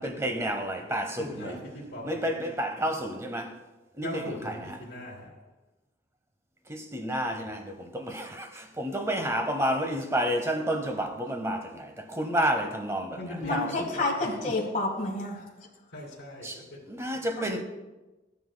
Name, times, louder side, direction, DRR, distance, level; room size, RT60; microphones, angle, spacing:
voice 1, 0.0-1.6 2.0-3.5 4.0-4.8 6.7-13.9 14.4-14.5 16.4-16.6 16.9-17.6, equal, 15° right, 0.9 m, -30 dB
voice 2, 1.2-2.5 4.0-4.5 4.8-5.3 7.2-7.4 13.2-13.6 13.9-14.1 15.9-16.6, left 1 dB, 75° left, 2.6 m, -39 dB
voice 3, 13.4-15.5 17.4-17.5, left 2 dB, 40° left, 1.7 m, -30 dB
14.0 x 9.6 x 2.2 m
head